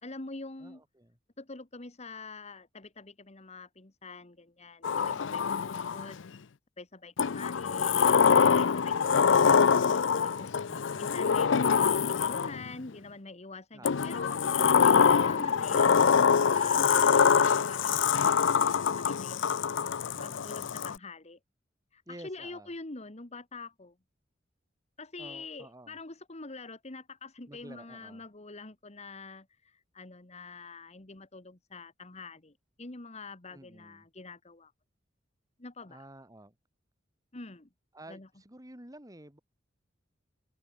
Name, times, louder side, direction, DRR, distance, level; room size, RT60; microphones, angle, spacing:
voice 1, 0.0-0.8 1.4-6.2 6.8-11.5 12.1-14.4 14.8-19.5 20.2-21.4 21.9-24.0 25.0-34.7 35.6-36.1 37.3-37.7 38.1-38.3, left 3 dB, 35° left, 1.7 m, -45 dB
voice 2, 0.6-1.2 4.9-5.4 10.7-11.1 13.7-14.2 20.1-20.6 22.1-22.7 25.2-26.0 27.5-28.2 33.5-34.1 35.9-36.5 37.9-39.4, right 1 dB, 20° right, 4.2 m, -51 dB
Sliding door, 4.8-6.2 7.2-12.7 13.8-21.0, left 6 dB, 75° left, 0.5 m, -24 dB
open air
head